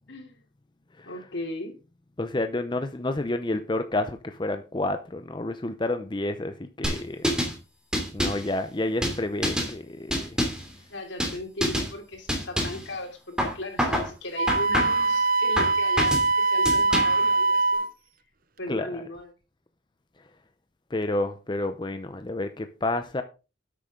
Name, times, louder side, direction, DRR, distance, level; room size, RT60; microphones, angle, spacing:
voice 1, 0.1-0.4 1.0-1.7 10.9-17.9 18.6-19.3, left 1 dB, 80° left, 3.2 m, -37 dB
voice 2, 2.2-7.3 8.1-10.4 18.7-19.0 20.2-20.3 20.9-23.2, left 2 dB, 25° left, 0.7 m, -30 dB
sound 1, 6.8-7.5 7.9-8.5 9.0-9.7 10.1-10.7 11.2-11.4 11.6-11.9 12.3-12.8 13.4-14.1 14.5-15.1 15.6-16.3 16.6-17.3, equal, 5° right, 2.7 m, -27 dB
Wind instrument woodwind instrument, 14.4-17.9, right 3 dB, 50° right, 0.7 m, -23 dB
11.5 x 8.4 x 3.8 m
head